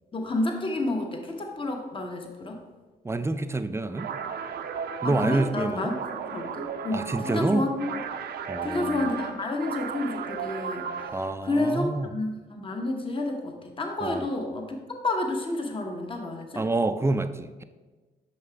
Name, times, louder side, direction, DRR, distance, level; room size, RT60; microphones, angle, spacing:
voice 1, 0.1-2.6 5.0-5.9 6.3-7.9 8.6-11.2 11.4-16.6, left 2 dB, 30° left, 3 dB, 1.0 m, -30 dB
voice 2, 3.0-4.1 5.0-6.0 6.9-7.7 8.5-9.1 11.1-12.1 14.0-14.3 16.5-17.6, right 2 dB, 15° right, 11 dB, 0.4 m, -27 dB
sound 1, 3.9-11.3, right 6 dB, 70° right, 0.5 m, -35 dB
5.8 x 5.5 x 3.3 m, 1.3 s
cardioid pair, 65°, 17 cm